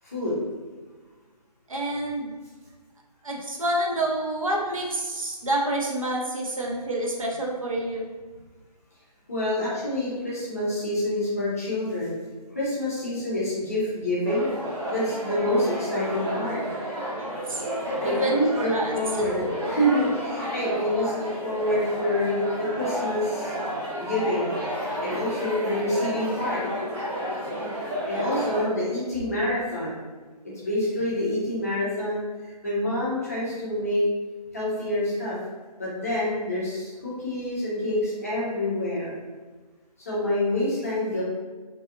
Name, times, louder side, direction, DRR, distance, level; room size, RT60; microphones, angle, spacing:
voice 1, 0.0-0.4 9.3-12.1 12.5-14.5 14.9-16.6 18.0-23.5 24.0-24.5 25.0-26.6 28.1-30.0 30.6-34.0 34.5-35.4 35.8-39.1 40.0-41.2, left 1 dB, 20° left, -8 dB, 0.6 m, -27 dB
voice 2, 1.7-2.3 3.2-8.1 17.2-17.7 18.0-19.3 28.1-28.4, right 1 dB, 55° right, -2 dB, 0.6 m, -28 dB
sound 1, 14.2-28.7, equal, 40° right, 1.0 m, -31 dB
2.6 x 2.4 x 2.5 m, 1.3 s
figure-of-eight pair, 155°, 21 cm